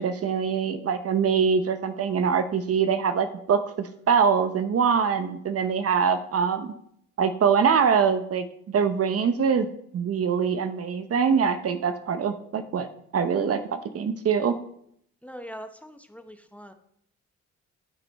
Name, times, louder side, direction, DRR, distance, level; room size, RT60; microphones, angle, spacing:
voice 1, 0.0-6.7 7.2-9.7 9.9-12.9 13.1-14.5, right 6 dB, 50° right, 10 dB, 0.9 m, -24 dB
voice 2, 15.2-16.7, equal, 5° left, 7 dB, 0.8 m, -42 dB
8.9 x 8.4 x 3.5 m, 0.69 s
cardioid pair, 90°, 30 cm